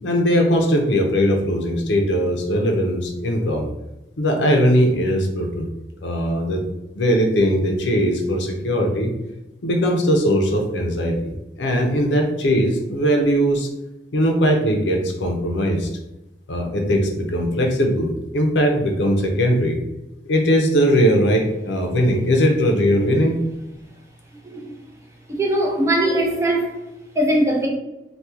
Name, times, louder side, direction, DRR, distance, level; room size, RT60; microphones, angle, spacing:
voice 1, 0.0-3.7 4.2-5.7 6.0-6.6 6.9-9.1 9.6-13.7 14.1-15.9 16.5-19.8 20.3-23.4, equal, 90° left, 2 dB, 0.6 m, -19 dB
voice 2, 25.3-26.7 27.2-27.7, right 1 dB, 15° right, -1 dB, 0.6 m, -20 dB
2.9 x 2.3 x 3.5 m, 0.94 s
head